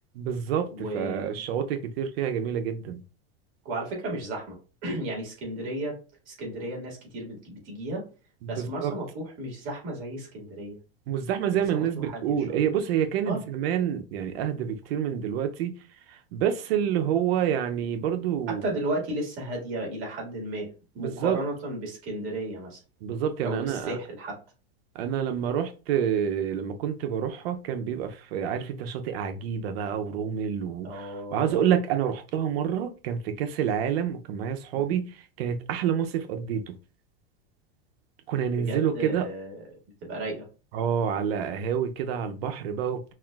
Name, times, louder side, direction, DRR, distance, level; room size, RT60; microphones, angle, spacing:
voice 1, 0.2-3.0 8.4-8.9 11.1-15.7 16.1-18.6 21.0-21.4 23.0-24.0 24.9-36.7 38.3-39.3 40.7-43.1, right 8 dB, 75° right, 0.6 m, -28 dB
voice 2, 0.7-1.4 3.6-4.6 4.8-5.9 6.3-8.1 8.5-10.8 12.0-12.6 13.3-13.4 18.5-20.7 20.9-22.8 23.4-24.4 30.8-31.6 34.7-34.9 38.5-39.6 40.0-40.5, right 1 dB, 40° right, 2.0 m, -34 dB
5.7 x 2.4 x 2.3 m
supercardioid pair, 150°, 30 cm